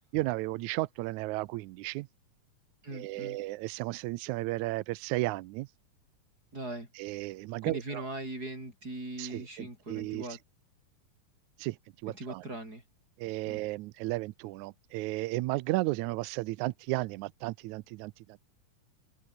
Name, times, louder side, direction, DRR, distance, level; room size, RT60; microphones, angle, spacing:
voice 1, 0.1-2.1 2.9-5.7 7.0-8.0 9.2-10.3 11.6-11.8 12.0-12.4 13.2-18.4, right 20 dB, 80° right, 1.8 m, -34 dB
voice 2, 2.8-3.4 6.5-6.9 7.6-10.4 12.1-12.8 13.4-13.6, right 2 dB, 25° right, 7.4 m, -40 dB
omnidirectional pair, 3.7 m